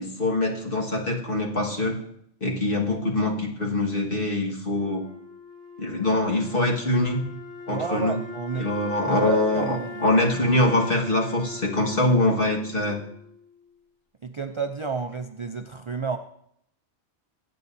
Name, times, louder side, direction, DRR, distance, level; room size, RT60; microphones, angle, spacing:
voice 1, 0.0-2.0 2.4-5.0 5.8-7.3 7.7-8.2 8.6-13.0, left 1 dB, 55° left, -1 dB, 1.9 m, -24 dB
Wind instrument woodwind instrument, 4.7-13.8, left 3 dB, 85° left, 2.3 m, -41 dB
voice 2, 7.7-8.7 9.1-10.0 14.2-16.2, right 5 dB, 45° right, 6 dB, 0.4 m, -31 dB
21.0 x 8.5 x 2.7 m, 0.71 s
omnidirectional pair, 1.1 m